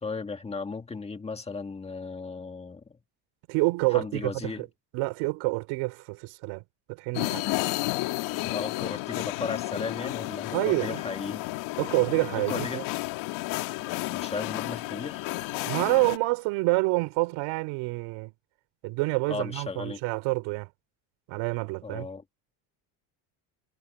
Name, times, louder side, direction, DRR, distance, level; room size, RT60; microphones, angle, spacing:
voice 1, 0.0-2.9 3.9-4.7 8.3-11.5 12.3-12.8 14.1-15.2 19.3-20.0 21.8-22.2, left 4 dB, 15° left, 1.8 m, -36 dB
voice 2, 3.5-4.7 4.9-6.6 6.9-7.5 10.5-11.0 11.8-12.8 15.6-18.3 18.8-20.7 21.3-22.1, right 24 dB, 90° right, 3.4 m, -27 dB
sound 1, 7.1-16.2, left 21 dB, 85° left, 2.1 m, -32 dB
cardioid pair, 160°, 46 cm